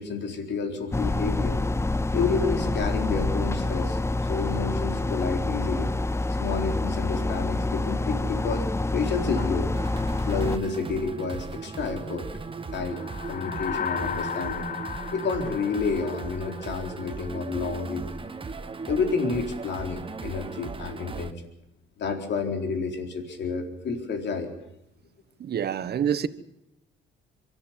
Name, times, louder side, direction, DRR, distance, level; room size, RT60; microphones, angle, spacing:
voice 1, 0.0-1.6 2.1-5.9 6.4-9.7 10.3-12.3 12.7-14.7 15.1-18.2 18.9-21.4 22.0-24.5, left 4 dB, 60° left, 4.2 m, -30 dB
sound 1, 0.9-10.6, left 2 dB, 15° left, 0.7 m, -27 dB
sound 2, 9.7-21.3, right 4 dB, 25° right, 1.4 m, -37 dB
sound 3, 12.8-17.3, left 7 dB, 40° left, 1.1 m, -35 dB
voice 2, 25.4-26.3, right 8 dB, 55° right, 1.4 m, -26 dB
24.0 x 13.5 x 9.5 m
supercardioid pair, 70°, 20 cm